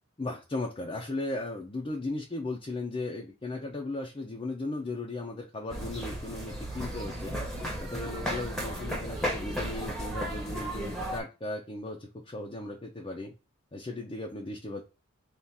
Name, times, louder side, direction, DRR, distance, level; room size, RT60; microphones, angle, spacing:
voice 1, 0.2-13.3 13.7-14.8, left 2 dB, 25° left, 0 dB, 0.5 m, -36 dB
sound 1, 5.7-11.2, equal, ahead, 0.8 m, -34 dB
3.5 x 2.4 x 4.0 m, 0.30 s
head